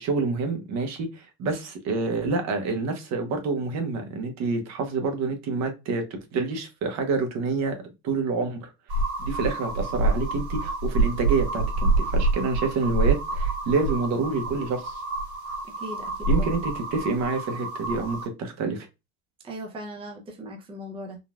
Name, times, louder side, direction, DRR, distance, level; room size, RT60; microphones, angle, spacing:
voice 1, 0.0-8.7 9.2-14.9 16.3-18.9, right 4 dB, 50° right, 0.9 m, -28 dB
sound 1, 8.9-18.3, right 3 dB, 70° right, 1.8 m, -27 dB
voice 2, 15.6-16.1 16.4-16.5 19.4-21.2, equal, 15° right, 0.6 m, -38 dB
3.8 x 2.3 x 2.3 m
cardioid pair, 125°, 33 cm